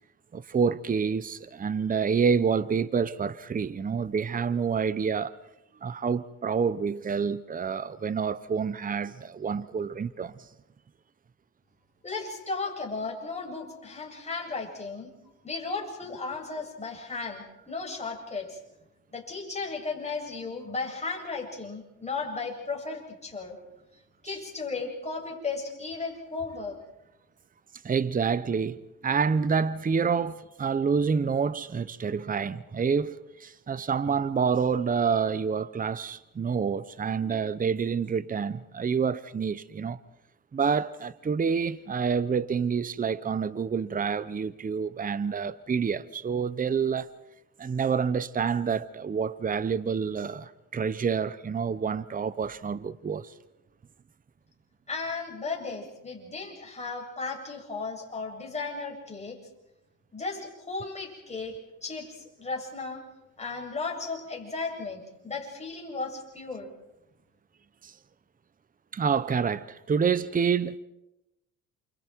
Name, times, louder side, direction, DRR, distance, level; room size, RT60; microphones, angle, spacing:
voice 1, 0.3-5.4 5.8-10.4 24.3-24.4 27.8-40.0 40.5-47.1 47.6-53.3 67.8-67.9 68.9-70.8, right 6 dB, 25° right, 0.9 m, -28 dB
voice 2, 12.0-15.1 15.4-18.6 19.1-23.6 24.2-26.8 54.9-59.4 60.1-61.6 61.8-63.0 63.4-66.7, left 4 dB, 20° left, 7.9 m, -35 dB
29.5 x 28.5 x 4.6 m
cardioid pair, 95°, 31 cm